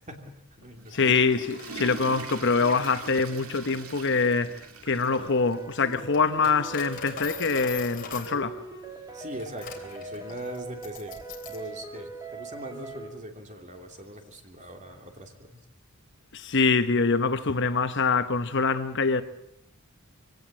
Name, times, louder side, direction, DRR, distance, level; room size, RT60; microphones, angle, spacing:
voice 1, 0.1-1.2 9.1-11.2 11.5-15.6, equal, 35° right, 3.0 m, -41 dB
Water / Toilet flush, 0.6-5.6 5.9-6.0 6.8-6.9 8.1-8.2, right 5 dB, 85° right, 2.1 m, -42 dB
voice 2, 0.9-4.5 4.9-8.6 16.3-19.2, left 4 dB, 55° left, 1.1 m, -24 dB
Coin (dropping), 1.2-11.7, left 6 dB, 40° left, 3.5 m, -44 dB
sound 1, 5.1-13.1, right 3 dB, 15° right, 2.8 m, -41 dB
23.5 x 17.5 x 7.6 m
head